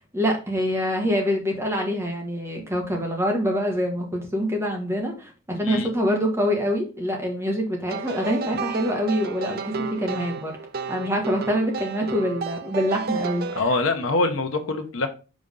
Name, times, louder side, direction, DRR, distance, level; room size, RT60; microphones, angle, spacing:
voice 1, 0.1-10.5 10.9-13.7, equal, 10° right, 1 dB, 1.4 m, -25 dB
sound 1, 7.9-13.6, right 5 dB, 45° right, 0.5 m, -32 dB
voice 2, 13.6-15.1, left 3 dB, 75° left, 6 dB, 0.9 m, -24 dB
5.2 x 3.7 x 5.4 m, 0.34 s
head